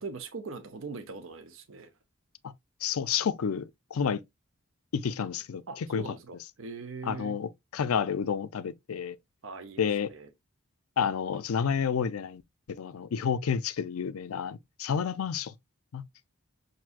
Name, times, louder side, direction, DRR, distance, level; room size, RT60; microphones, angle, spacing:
voice 1, 0.0-1.9 5.7-7.4 9.4-10.3, right 4 dB, 70° right, 0.6 m, -41 dB
voice 2, 2.8-4.2 4.9-5.6 5.9-6.1 7.0-9.2 9.8-10.1 11.0-12.4 12.7-15.5 15.9-16.0, left 7 dB, 90° left, 0.4 m, -30 dB
5.9 x 2.6 x 2.4 m
head